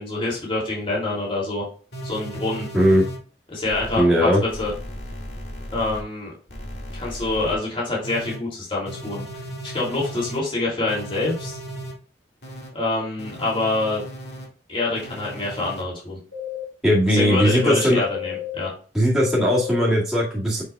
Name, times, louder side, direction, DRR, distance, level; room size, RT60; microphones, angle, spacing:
voice 1, 0.0-1.6 2.0-2.7 3.5-4.7 5.7-6.3 6.9-9.2 9.6-11.6 12.7-14.0 14.7-16.2 17.1-18.7, left 2 dB, 30° left, -5 dB, 2.8 m, -26 dB
sound 1, 1.9-3.2 3.6-4.0 4.5-6.0 6.5-7.5 8.0-8.4 8.9-10.4 10.9-11.9 12.4-12.7 13.2-14.5 14.9-15.8 16.3-16.6 17.1-18.7 19.2-19.8, left 3 dB, 60° left, 2.2 m, -34 dB
voice 2, 2.7-3.0 4.0-4.4 16.8-18.0 18.9-20.6, equal, 5° right, -8 dB, 2.0 m, -18 dB
6.7 x 6.3 x 2.4 m, 0.39 s
head